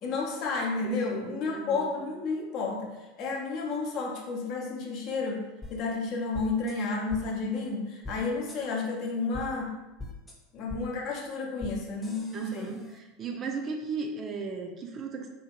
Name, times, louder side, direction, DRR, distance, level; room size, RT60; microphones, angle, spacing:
voice 1, 0.0-2.9 3.2-5.4 5.7-9.7 10.5-12.7, left 3 dB, 55° left, 0 dB, 0.6 m, -31 dB
voice 2, 0.8-1.9 12.3-15.3, right 4 dB, 35° right, 3 dB, 0.4 m, -36 dB
sound 1, 5.6-5.7 6.3-6.7 7.1-7.2 8.0-8.2 8.5-8.6 9.3-9.5 10.0-10.3 10.7-10.8 11.6-11.7 12.0-13.0, left 2 dB, 15° left, 0.7 m, -41 dB
2.7 x 2.4 x 2.9 m, 1.1 s
hypercardioid pair, 85°, 0 cm